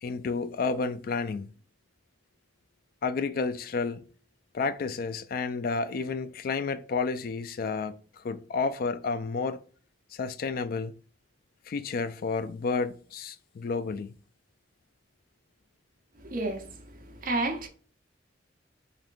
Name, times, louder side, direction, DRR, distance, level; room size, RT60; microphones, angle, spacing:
voice 1, 0.0-1.5 3.0-4.0 4.5-9.6 10.1-10.9 11.7-14.1, left 4 dB, 55° left, 0.3 m, -31 dB
voice 2, 16.2-17.7, right 2 dB, 50° right, 0.8 m, -32 dB
3.8 x 3.5 x 2.5 m
head